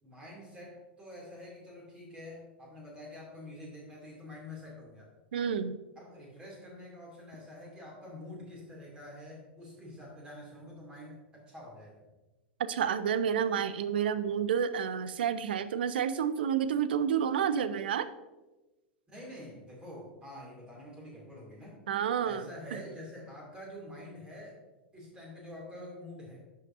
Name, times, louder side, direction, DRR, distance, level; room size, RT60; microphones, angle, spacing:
voice 1, 0.0-5.1 6.0-12.0 19.1-21.8 22.2-24.6 24.9-26.4, left 1 dB, 15° right, -3 dB, 2.5 m, -47 dB
voice 2, 5.3-5.8 12.7-18.1 21.9-22.8, right 8 dB, 65° right, 13 dB, 0.5 m, -30 dB
11.0 x 5.6 x 2.6 m, 1.1 s
figure-of-eight pair, 95°, 6 cm